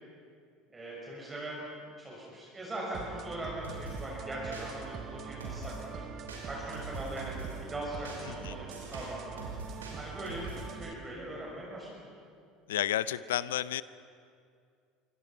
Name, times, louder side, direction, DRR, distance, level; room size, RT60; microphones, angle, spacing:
voice 1, 0.7-1.6 2.0-6.0 6.4-9.4 10.0-12.1, right 1 dB, 20° right, -4 dB, 6.0 m, -40 dB
sound 1, 2.9-10.9, right 6 dB, 40° right, 1.8 m, -43 dB
sound 2, 3.6-4.0 4.5-5.0 5.4-5.9 6.3-7.6 8.1-10.7, right 2 dB, 75° right, 5.4 m, -44 dB
voice 2, 12.7-13.8, left 12 dB, 70° left, 18 dB, 0.5 m, -31 dB
27.5 x 24.0 x 5.8 m, 2.2 s
figure-of-eight pair, 70°, 0 cm